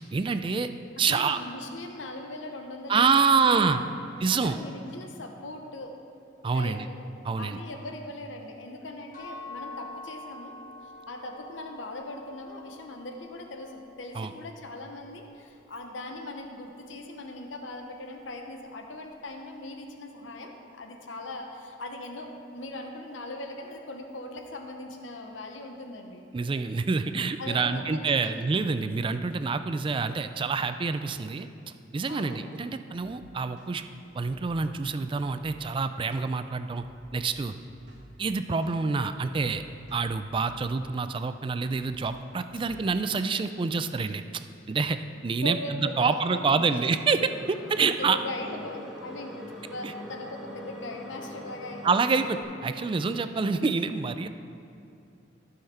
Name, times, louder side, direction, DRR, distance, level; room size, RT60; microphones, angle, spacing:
voice 1, 0.1-0.7 1.0-1.4 2.9-3.8 4.2-4.6 6.4-6.9 7.2-7.6 14.1-14.3 26.3-31.5 31.9-33.9 34.1-36.8 37.1-37.5 38.2-39.6 39.9-48.2 49.8-49.9 51.8-54.3, right 4 dB, 25° right, 10 dB, 0.3 m, -27 dB
voice 2, 1.0-3.9 4.3-5.9 6.5-7.0 7.4-10.5 10.8-26.3 27.4-28.3 32.1-32.5 45.4-46.8 48.0-52.3 52.8-52.9, left 1 dB, 85° left, 3 dB, 0.9 m, -40 dB
sound 1, 9.1-14.9, left 2 dB, 40° left, 2.3 m, -46 dB
sound 2, 32.9-33.2 33.6-33.7 34.1-35.7 36.1-36.3 36.6-38.2 38.6-38.8 39.1-40.7 41.1-41.3 41.7-42.9, equal, 60° right, 1.4 m, -53 dB
sound 3, 47.0-52.4, left 1 dB, ahead, 1.1 m, -42 dB
14.5 x 5.7 x 4.3 m, 2.6 s
head